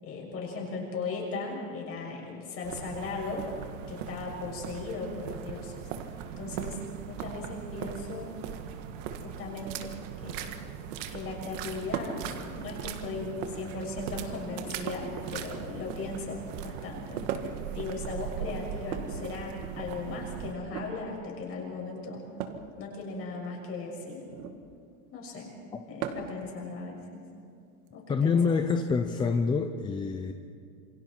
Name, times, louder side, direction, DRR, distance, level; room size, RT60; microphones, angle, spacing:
voice 1, 0.0-3.5 3.9-5.9 6.4-8.4 9.2-10.5 11.1-17.2 17.7-22.2 22.8-24.3 25.1-25.5 25.9-27.0 27.9-28.6, left 3 dB, 30° left, -2 dB, 6.6 m, -37 dB
sound 1, 2.6-20.5, right 8 dB, 60° right, 1.8 m, -39 dB
sound 2, 11.9-12.3 13.3-13.8 14.8-15.9 17.3-17.7 18.8-19.9 20.6-20.9 22.4-22.7 24.3-24.6 26.0-26.4 27.9-28.0 29.2-29.3, right 8 dB, 85° right, 2.1 m, -37 dB
voice 2, 28.1-30.3, left 5 dB, 10° left, 6 dB, 0.5 m, -26 dB
28.0 x 23.5 x 4.6 m, 2.4 s
supercardioid pair, 150°, 42 cm